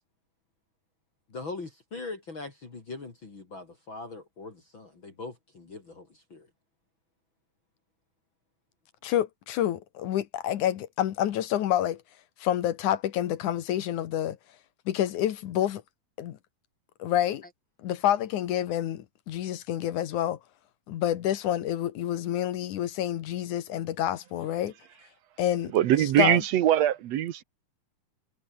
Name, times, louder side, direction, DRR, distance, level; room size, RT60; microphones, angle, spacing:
voice 1, 1.3-6.5, left 3 dB, 35° left, 4.1 m, -41 dB
voice 2, 9.0-12.0 12.4-14.4 14.9-15.8 16.2-16.4 17.0-17.4 17.8-20.4 20.9-24.7 25.4-25.7 26.2-26.4, left 11 dB, 75° left, 2.7 m, -28 dB
voice 3, 25.7-27.4, right 12 dB, 65° right, 2.0 m, -22 dB
omnidirectional pair, 3.7 m